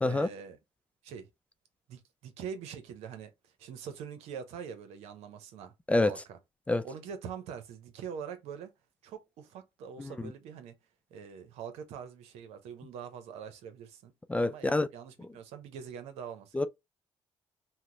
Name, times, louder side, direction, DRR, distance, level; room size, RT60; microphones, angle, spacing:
voice 1, 0.0-0.6 1.0-1.3 1.9-3.3 3.6-5.7 6.0-6.4 6.8-8.7 9.0-10.7 11.1-14.1 14.4-16.7, right 7 dB, 80° right, 0.8 m, -43 dB
voice 2, 10.0-10.3 14.3-14.9 16.5-16.7, left 2 dB, 10° left, 0.3 m, -27 dB
2.9 x 2.1 x 3.8 m
supercardioid pair, 80°, 11 cm